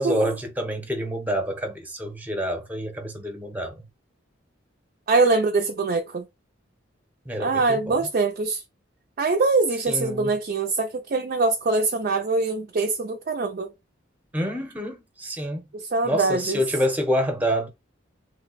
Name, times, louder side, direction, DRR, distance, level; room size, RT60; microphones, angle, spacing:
voice 1, 0.0-3.8 7.2-8.1 9.9-10.3 14.3-15.6 16.0-17.7, equal, 10° right, 0.8 m, -27 dB
voice 2, 5.1-6.3 7.4-8.6 9.2-13.7 15.7-16.6, right 3 dB, 45° right, 0.4 m, -23 dB
3.3 x 2.1 x 3.9 m
head